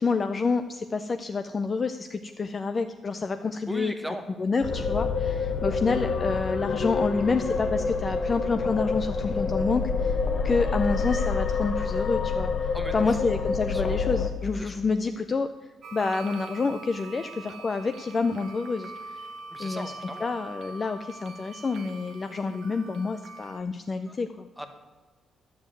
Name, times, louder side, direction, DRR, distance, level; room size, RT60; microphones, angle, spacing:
voice 1, 0.0-3.9 4.4-10.2 10.4-15.5 15.9-18.9 19.6-19.9 20.2-24.5, left 4 dB, 25° left, 8 dB, 0.4 m, -28 dB
voice 2, 3.7-4.2 12.7-13.4 13.7-13.9 14.6-14.7 19.5-20.3 24.1-24.2 24.6-24.7, equal, ahead, 7 dB, 0.9 m, -38 dB
sound 1, 4.6-14.3, left 4 dB, 40° left, 0.9 m, -27 dB
sound 2, 15.8-23.6, right 3 dB, 60° right, 1.0 m, -43 dB
11.0 x 7.1 x 7.6 m, 1.3 s
cardioid pair, 180°, 0 cm